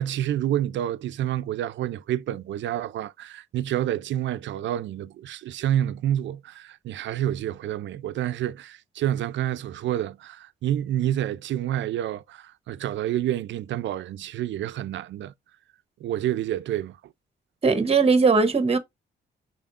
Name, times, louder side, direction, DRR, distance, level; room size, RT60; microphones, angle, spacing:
voice 1, 0.0-15.3 16.0-17.1, right 11 dB, 80° right, 0.4 m, -28 dB
voice 2, 17.6-18.8, right 4 dB, 30° right, 0.9 m, -19 dB
6.0 x 3.5 x 2.4 m
cardioid pair, 95°, 19 cm